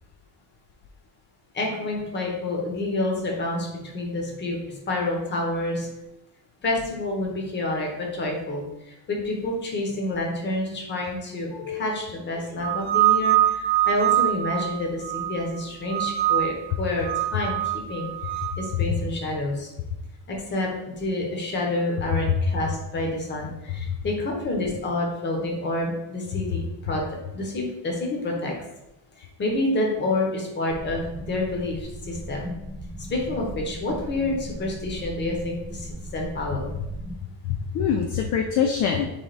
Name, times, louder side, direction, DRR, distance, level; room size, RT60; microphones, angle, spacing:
voice 1, 1.5-5.9 6.6-19.7 20.3-27.0 27.3-28.5 29.2-32.5 33.0-36.7, left 2 dB, 30° left, 0 dB, 0.9 m, -28 dB
voice 2, 11.5-11.9 23.9-24.0 37.4-39.1, left 7 dB, 50° left, 3 dB, 0.4 m, -25 dB
sound 1, 12.6-15.5 15.9-16.7 17.0-18.6, right 13 dB, 85° right, 0.6 m, -24 dB
sound 2, 30.7-37.2, right 1 dB, 30° right, 1.2 m, -37 dB
3.5 x 3.4 x 4.0 m, 0.92 s
cardioid pair, 170°, 37 cm